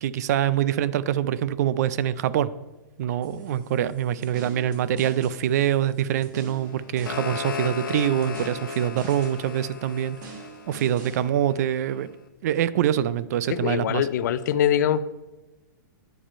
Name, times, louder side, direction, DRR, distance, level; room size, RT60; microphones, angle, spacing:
voice 1, 0.0-2.5 3.0-10.3 10.7-12.1 12.4-14.1, right 10 dB, 55° right, 16 dB, 0.4 m, -25 dB
sound 1, 3.2-11.2, right 5 dB, 70° right, 2.7 m, -46 dB
sound 2, 6.7-11.7, left 6 dB, 85° left, 0.9 m, -35 dB
voice 2, 13.5-15.0, left 10 dB, 60° left, 15 dB, 0.4 m, -23 dB
8.8 x 5.0 x 4.4 m, 1.1 s
hypercardioid pair, 155°, 11 cm